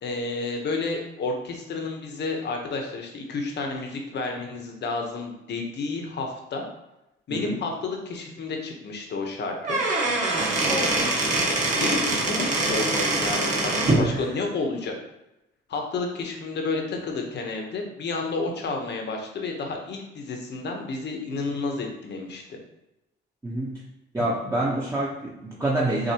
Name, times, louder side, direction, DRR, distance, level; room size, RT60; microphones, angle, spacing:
voice 1, 0.0-6.7 7.3-9.8 11.7-14.9 15.7-22.6, left 3 dB, 60° left, 2 dB, 1.1 m, -31 dB
Squeak / Wood, 9.5-14.1, right 2 dB, 40° right, 1.4 m, -24 dB
voice 2, 10.6-10.9 14.0-14.3 23.4-23.8 24.1-26.1, right 1 dB, 15° right, -6 dB, 1.0 m, -27 dB
6.4 x 2.6 x 2.9 m, 0.91 s
cardioid pair, 90°, 20 cm